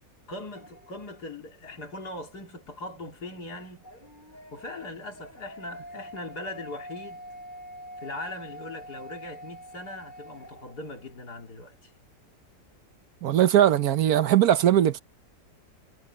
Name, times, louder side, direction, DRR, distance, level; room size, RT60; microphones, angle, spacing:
voice 1, 0.3-3.8 4.5-7.2 8.0-11.9, left 2 dB, 70° left, 3.7 m, -40 dB
sound 1, 0.5-1.3 3.8-11.2, equal, 25° left, 6.8 m, -45 dB
voice 2, 13.2-15.0, right 11 dB, 65° right, 1.3 m, -20 dB
omnidirectional pair, 1.8 m